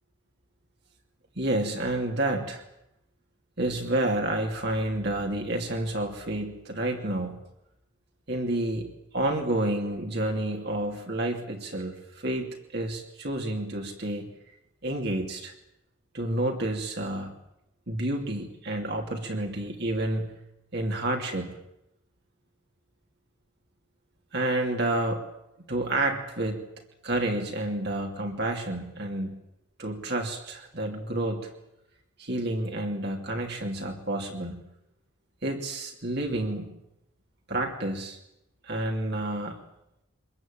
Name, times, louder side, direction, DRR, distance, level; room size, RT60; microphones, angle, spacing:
voice 1, 1.4-2.6 3.6-7.4 8.3-14.3 14.8-15.5 16.1-17.3 17.9-20.3 20.7-21.5 24.3-25.2 25.7-26.7 27.0-29.4 29.8-31.5 32.2-34.5 35.4-36.8 37.5-38.2 38.6-39.6, right 1 dB, 50° right, 2 dB, 2.9 m, -29 dB
24.5 x 21.0 x 8.9 m, 0.84 s
head